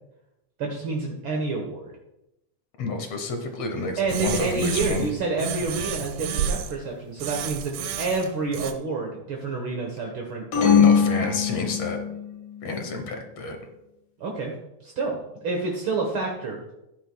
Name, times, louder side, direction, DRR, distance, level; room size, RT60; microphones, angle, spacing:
voice 1, 0.6-1.9 4.0-10.5 14.2-14.5 14.8-16.7, right 3 dB, 60° right, 0 dB, 1.4 m, -28 dB
voice 2, 2.8-5.1 10.5-12.0 12.6-13.6, left 3 dB, 65° left, 5 dB, 1.8 m, -29 dB
sound 1, 4.1-5.1 5.4-6.7 7.2-8.7, right 8 dB, 90° right, 1.4 m, -30 dB
sound 2, 10.5-12.2, left 7 dB, 90° left, 4.0 m, -20 dB
13.5 x 9.9 x 2.2 m, 0.89 s
omnidirectional pair, 3.8 m